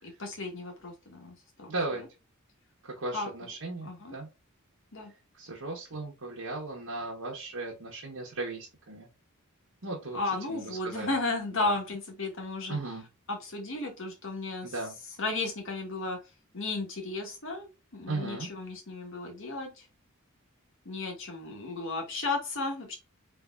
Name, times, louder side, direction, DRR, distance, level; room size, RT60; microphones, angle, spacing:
voice 1, 0.2-1.7 3.1-3.3 3.8-4.1 4.9-5.1 10.1-12.8 13.3-14.7 15.2-16.2 16.5-19.7 20.8-23.0, left 3 dB, 60° left, 2 dB, 1.6 m, -34 dB
voice 2, 1.7-2.0 2.8-4.3 5.3-9.1 9.8-11.2 11.6-11.7 12.7-13.0 14.6-15.0 18.1-18.5, right 2 dB, 70° right, -4 dB, 1.2 m, -36 dB
3.9 x 3.4 x 2.5 m, 0.27 s
head